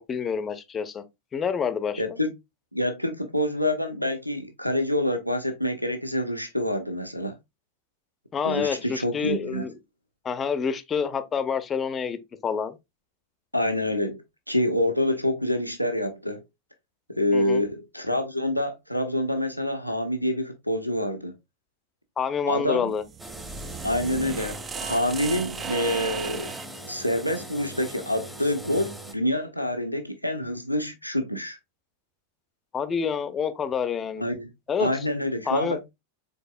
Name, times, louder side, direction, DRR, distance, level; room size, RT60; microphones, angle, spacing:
voice 1, 0.1-1.0 1.3-2.0 8.3-9.8 10.2-12.8 17.3-17.6 22.2-23.0 32.7-34.2 34.7-34.9 35.5-35.8, left 6 dB, 20° left, 0.6 m, -28 dB
voice 2, 2.0-2.3 2.7-7.3 8.4-9.6 13.5-14.2 14.5-16.4 17.2-21.4 22.5-22.9 23.8-26.5 26.9-31.6 34.2-34.5 34.8-35.8, left 1 dB, 90° left, 0.6 m, -27 dB
sound 1, 22.9-26.8, right 6 dB, 25° right, 0.4 m, -36 dB
sound 2, 23.2-29.1, right 1 dB, 5° right, 0.8 m, -41 dB
5.3 x 3.9 x 2.3 m
figure-of-eight pair, 90°, 0 cm